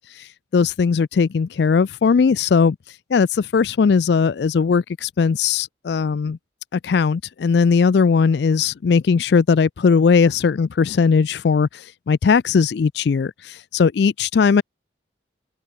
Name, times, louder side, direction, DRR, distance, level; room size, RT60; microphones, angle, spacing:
voice 1, 0.5-2.8 3.1-6.4 6.7-11.7 12.1-13.3 13.7-14.6, left 5 dB, 65° left, 0.4 m, -18 dB
head